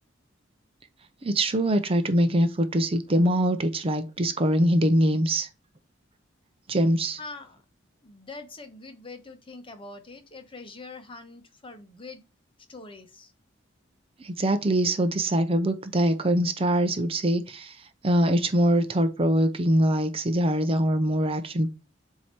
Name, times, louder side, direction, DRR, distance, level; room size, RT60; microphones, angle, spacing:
voice 1, 1.2-5.5 6.7-7.2 14.2-21.7, right 1 dB, 30° right, 0.6 m, -23 dB
voice 2, 7.2-7.6 8.0-12.2 12.7-13.3, left 3 dB, 25° left, 1.0 m, -43 dB
7.8 x 2.8 x 4.3 m
head